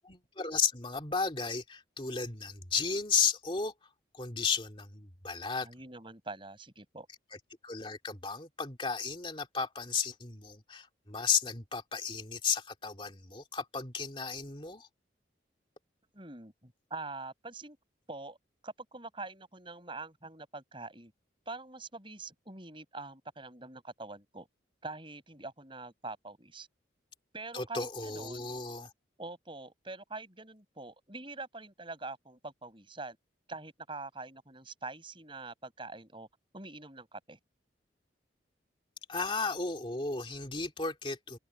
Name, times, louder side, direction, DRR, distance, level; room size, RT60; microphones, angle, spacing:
voice 1, 0.0-3.7 4.1-5.7 7.6-14.9 27.5-28.9 39.1-41.4, left 5 dB, 25° left, 2.3 m, -34 dB
voice 2, 5.6-7.1 16.1-17.8 18.1-18.4 18.6-21.1 21.5-24.5 24.8-26.7 27.3-28.5 29.2-33.2 33.5-36.3 36.5-37.4, right 3 dB, 25° right, 7.8 m, -44 dB
open air
head